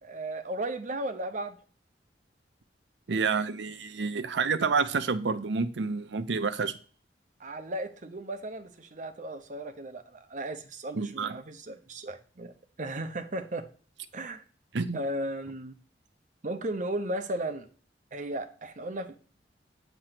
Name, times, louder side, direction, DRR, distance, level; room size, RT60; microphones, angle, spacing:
voice 1, 0.0-1.6 7.4-12.5 12.8-13.7 14.1-14.4 14.9-15.7 16.4-17.7 18.1-19.2, right 1 dB, 45° right, 0.8 m, -35 dB
voice 2, 3.1-6.7 10.9-11.4 14.7-15.0, right 5 dB, 80° right, 0.6 m, -29 dB
8.9 x 3.1 x 5.9 m
head